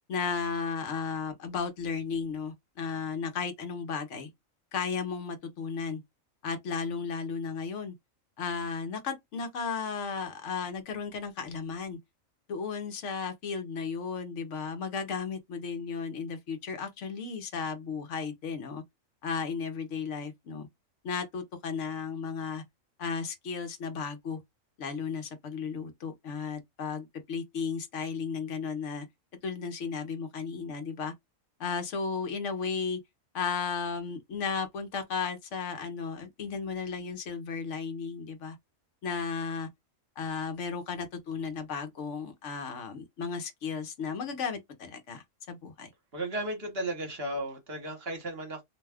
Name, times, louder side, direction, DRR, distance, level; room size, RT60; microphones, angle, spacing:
voice 1, 0.1-4.3 4.7-6.0 6.4-7.9 8.4-12.0 12.5-18.8 19.2-20.7 21.0-22.6 23.0-24.4 24.8-29.1 29.4-31.1 31.6-33.0 33.3-38.6 39.0-39.7 40.2-45.9, left 5 dB, 70° left, 1.0 m, -34 dB
voice 2, 46.1-48.6, right 1 dB, 50° right, 1.1 m, -34 dB
2.6 x 2.2 x 3.3 m
omnidirectional pair, 1.4 m